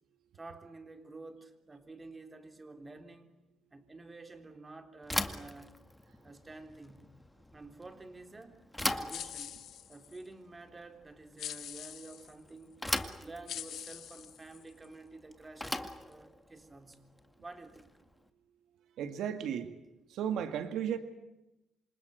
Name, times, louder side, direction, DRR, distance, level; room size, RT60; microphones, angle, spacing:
voice 1, 0.3-3.3 3.7-5.8 6.2-7.1 7.5-9.5 9.9-12.8 13.2-17.9, right 3 dB, 25° right, 6 dB, 3.5 m, -50 dB
Bicycle / Thump thud, 5.0-18.1, left 1 dB, 5° left, 2.0 m, -40 dB
sound 1, 9.1-10.2 11.4-12.3 13.0-13.1 13.5-14.9, left 10 dB, 75° left, 1.9 m, -44 dB
voice 2, 19.0-19.7 20.1-21.0, right 9 dB, 80° right, 8 dB, 1.9 m, -34 dB
27.5 x 26.0 x 8.0 m, 0.94 s
cardioid pair, 90°, 0 cm